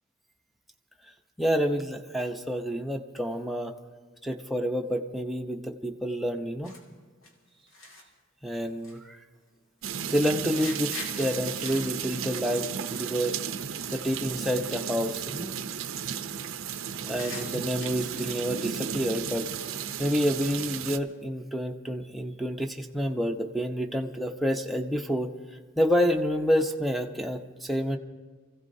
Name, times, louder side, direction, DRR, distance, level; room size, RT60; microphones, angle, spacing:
voice 1, 1.4-3.7 4.2-6.7 8.4-9.2 10.1-13.4 13.9-15.5 17.0-19.5 20.0-25.3 25.8-28.0, equal, ahead, 2 dB, 0.8 m, -28 dB
sound 1, 6.6-6.8 7.2-7.3 7.7-8.1 8.5-9.0 9.3-9.6 9.9-13.1 13.4-13.6 13.9-14.1 14.4-14.8 15.1-15.6 15.9-16.5 16.9-18.4, left 2 dB, 80° left, 2.5 m, -45 dB
sound 2, 9.8-21.0, right 8 dB, 85° right, 0.6 m, -34 dB
26.0 x 15.5 x 2.7 m, 1.5 s
head